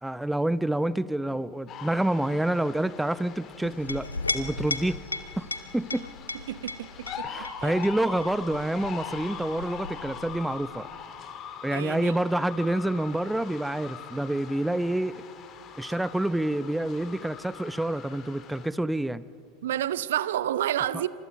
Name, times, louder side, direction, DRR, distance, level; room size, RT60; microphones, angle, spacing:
voice 1, 0.0-4.1 4.3-5.0 5.4-5.5 5.7-6.0 7.2-10.9 11.6-15.2 15.8-19.2 20.9-21.1, right 1 dB, 5° right, 17 dB, 0.7 m, -28 dB
sound 1, 1.7-18.7, left 7 dB, 35° left, 2.4 m, -42 dB
Chink clink, 3.6-10.8, left 3 dB, 85° left, 1.0 m, -37 dB
voice 2, 6.5-7.7 11.7-12.1 15.8-15.9 19.6-21.1, right 12 dB, 65° right, 17 dB, 0.7 m, -30 dB
28.0 x 26.5 x 5.2 m, 2.7 s
figure-of-eight pair, 80°, 0 cm